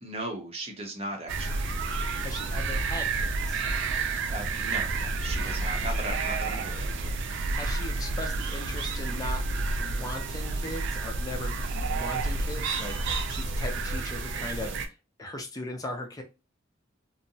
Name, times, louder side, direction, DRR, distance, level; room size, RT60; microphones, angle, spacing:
voice 1, 0.0-1.7 4.0-7.2, right 1 dB, 30° right, 2 dB, 0.7 m, -38 dB
sound 1, 1.3-14.9, right 3 dB, 60° right, 0.4 m, -30 dB
voice 2, 2.2-3.6 5.8-5.9 7.5-9.4 9.8-14.7 15.2-16.2, left 1 dB, 20° left, 3 dB, 0.5 m, -38 dB
2.6 x 2.1 x 2.7 m, 0.28 s
head